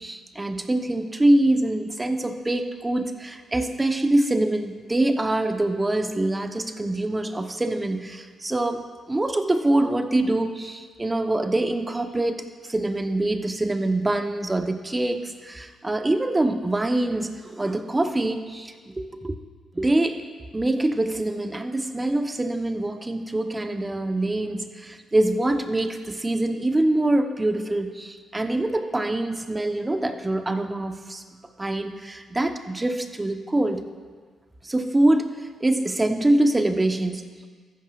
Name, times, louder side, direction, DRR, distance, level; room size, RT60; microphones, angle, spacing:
voice 1, 0.0-19.3 19.7-20.2 20.5-31.2 31.6-33.8 34.6-37.3, right 1 dB, 20° right, 7 dB, 1.0 m, -24 dB
14.0 x 11.0 x 2.5 m, 1.6 s
supercardioid pair, 50°, 0 cm